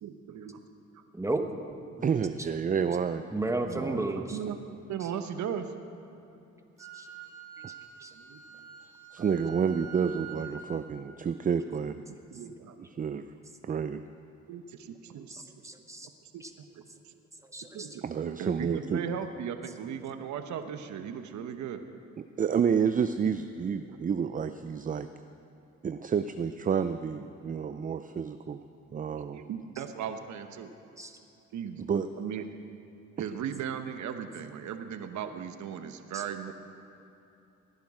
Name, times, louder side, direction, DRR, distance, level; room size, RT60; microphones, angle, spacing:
voice 1, 0.0-0.6 0.9-1.0 3.9-4.6 4.9-5.7 8.1-8.4 12.1-12.7 14.5-15.3 16.3-16.7 17.0-17.2 17.7-18.0 18.4-21.8 27.4-27.5 29.1-30.7 31.5-31.8 32.2-32.4 33.2-36.5, right 8 dB, 70° right, 8 dB, 1.0 m, -37 dB
voice 2, 2.0-3.3 3.7-4.1 9.1-12.0 12.8-13.2 13.6-14.0 18.0-19.0 22.4-25.1 25.8-28.6 28.9-29.4 31.8-32.1 33.2-33.3, right 7 dB, 30° right, 10 dB, 0.4 m, -29 dB
voice 3, 3.3-4.4 6.9-7.1 8.0-8.1 15.3-16.1 16.4-16.5 17.4-17.9 31.0-31.1 36.1-36.2, right 2 dB, 10° right, 5 dB, 1.1 m, -33 dB
Wind instrument woodwind instrument, 6.8-10.6, right 8 dB, 85° right, 2.7 m, -46 dB
17.5 x 10.5 x 4.9 m, 2.8 s
cardioid pair, 90°, 30 cm